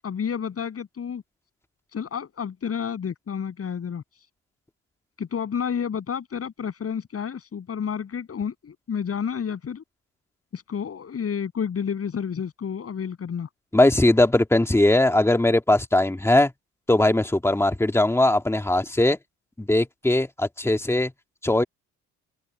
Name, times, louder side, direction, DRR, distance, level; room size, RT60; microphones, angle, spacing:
voice 1, 0.0-1.2 1.9-4.0 5.2-9.8 10.5-13.5, left 7 dB, 50° left, 7.8 m, -30 dB
voice 2, 13.7-16.5 16.9-19.2 19.6-21.1 21.4-21.6, left 1 dB, 10° left, 1.8 m, -20 dB
cardioid pair, 90°, 30 cm